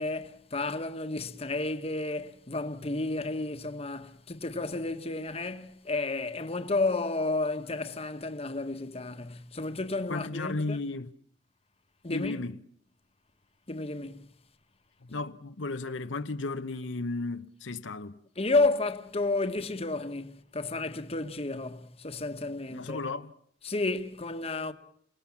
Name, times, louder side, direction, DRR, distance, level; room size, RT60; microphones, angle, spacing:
voice 1, 0.0-10.8 12.0-12.4 13.7-14.3 18.4-23.0 23.6-24.7, left 2 dB, 35° left, 1.3 m, -31 dB
voice 2, 10.1-11.1 12.1-12.6 15.0-18.2 22.7-23.3, left 3 dB, 85° left, 0.9 m, -34 dB
29.0 x 18.5 x 7.2 m
head